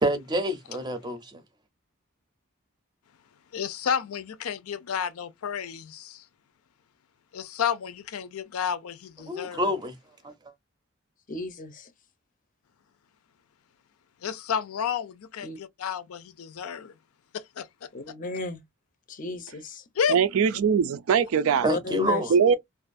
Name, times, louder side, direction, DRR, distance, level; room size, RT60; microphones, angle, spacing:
voice 1, 0.0-1.4 9.3-9.9 10.2-10.3 21.6-22.3, equal, 20° right, 0.5 m, -27 dB
voice 2, 3.5-6.3 7.3-9.7 14.2-16.9 17.3-17.9 19.9-20.2, left 7 dB, 90° left, 0.5 m, -31 dB
voice 3, 11.3-11.9 15.4-15.6 17.9-18.6 19.1-19.8 21.7-22.2, left 3 dB, 40° left, 0.5 m, -34 dB
voice 4, 20.1-21.7 22.3-22.5, right 7 dB, 75° right, 0.4 m, -21 dB
2.5 x 2.2 x 2.5 m
head